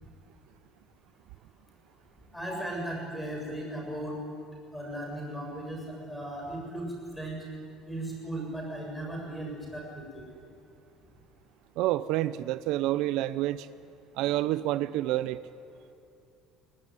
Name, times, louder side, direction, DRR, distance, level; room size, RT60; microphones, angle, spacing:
voice 1, 2.3-4.2 4.7-7.4 7.9-10.2, right 1 dB, 5° left, 0 dB, 7.3 m, -37 dB
voice 2, 11.8-13.7 14.1-15.4, right 15 dB, 70° right, 15 dB, 0.6 m, -28 dB
22.5 x 20.0 x 9.7 m, 2.6 s
cardioid pair, 140°, 0 cm